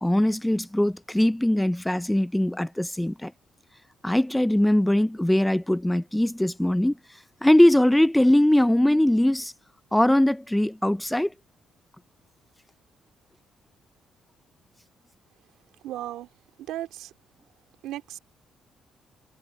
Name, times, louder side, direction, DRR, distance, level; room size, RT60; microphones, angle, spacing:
voice 1, 0.0-3.3 4.0-7.0 7.4-9.5 9.9-11.3, left 1 dB, 5° left, 0.6 m, -21 dB
voice 2, 15.8-16.3 16.7-17.1 17.8-18.2, right 14 dB, 90° right, 3.0 m, -35 dB
cardioid pair, 90°, 0 cm